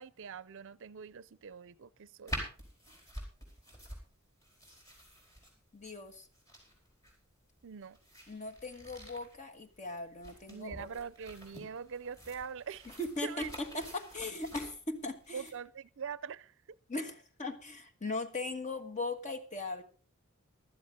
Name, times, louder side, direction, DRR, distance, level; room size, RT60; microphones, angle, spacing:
voice 1, 0.0-2.3 7.6-8.0 10.5-12.9 13.2-13.5 15.3-16.5, right 6 dB, 60° right, 0.5 m, -43 dB
sound 1, 2.3-15.5, equal, 15° left, 4.7 m, -47 dB
voice 2, 5.7-6.3 8.3-10.9 13.0-15.5 16.9-19.8, left 2 dB, 35° left, 1.5 m, -39 dB
15.5 x 12.5 x 3.7 m
head